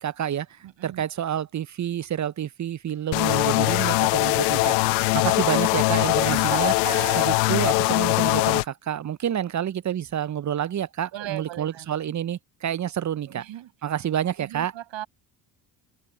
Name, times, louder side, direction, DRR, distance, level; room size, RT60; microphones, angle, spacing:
voice 1, 0.0-0.5 0.8-4.7 5.1-6.7 7.2-13.4 13.8-14.7, right 10 dB, 35° right, 0.9 m, -28 dB
voice 2, 0.6-1.1 4.6-4.8 6.2-7.4 11.1-11.9 13.3-13.7 14.4-15.1, right 13 dB, 60° right, 7.6 m, -36 dB
sound 1, 3.1-8.6, left 27 dB, 75° left, 1.1 m, -21 dB
open air
hypercardioid pair, 50°, 50 cm